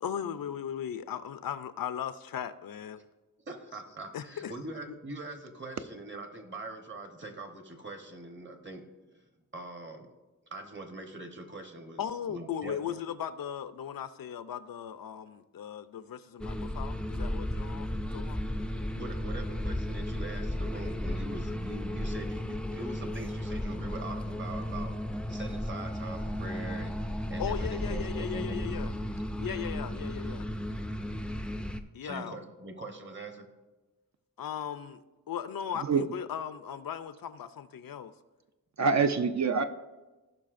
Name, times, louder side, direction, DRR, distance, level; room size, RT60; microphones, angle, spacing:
voice 1, 0.0-3.0 4.1-4.5 4.9-5.0 12.0-18.4 27.4-28.9 29.4-30.5 31.9-32.4 34.4-35.0 35.3-38.1, left 8 dB, 80° left, 13 dB, 0.5 m, -37 dB
voice 2, 3.5-8.8 9.1-9.2 9.5-10.1 10.5-12.0 12.3-12.9 18.9-24.9 25.3-26.9 27.3-28.8 32.0-33.5, right 2 dB, 35° right, 5 dB, 1.0 m, -42 dB
sound 1, 16.4-31.8, left 1 dB, 5° left, 0.4 m, -34 dB
voice 3, 35.8-36.1 38.8-39.6, right 5 dB, 55° right, 9 dB, 0.5 m, -25 dB
16.0 x 5.6 x 2.5 m, 1.1 s
wide cardioid pair, 110°, 34 cm